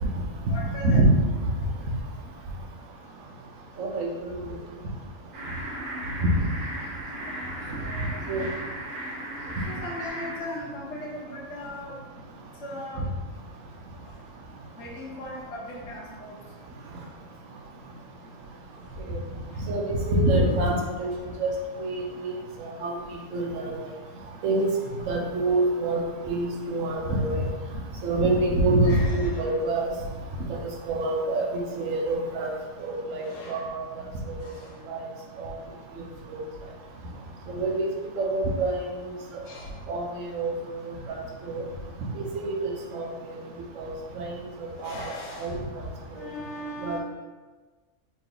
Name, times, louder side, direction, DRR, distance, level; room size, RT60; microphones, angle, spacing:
voice 1, 0.5-1.0 7.1-8.7 9.7-12.0 12.5-13.1 14.0-14.2 14.7-16.4 16.9-17.1 19.5-19.7 28.8-29.5 33.2-33.7 34.4-34.8 39.4-39.9 44.7-45.7 46.1-47.0, left 1 dB, 65° left, -4 dB, 1.1 m, -39 dB
voice 2, 3.8-4.1 6.2-6.3 8.3-8.5 19.1-19.2 19.7-21.5 21.8-22.3 22.6-23.0 23.3-23.8 24.4-24.7 25.1-27.4 28.0-29.9 30.6-32.5 32.8-33.8 34.3-34.5 34.9-35.0 35.4-35.5 36.3-36.4 37.5-37.9 38.2-38.7 39.9-40.5 41.4-41.6 42.1-43.1 43.8-44.3 44.6-44.9 45.4-45.6 46.1-46.2 46.8-47.0, right 2 dB, 80° right, 0 dB, 1.1 m, -26 dB
sound 1, 5.3-10.4, right 1 dB, 55° right, 0.9 m, -36 dB
3.1 x 3.0 x 3.7 m, 1.3 s
omnidirectional pair, 1.4 m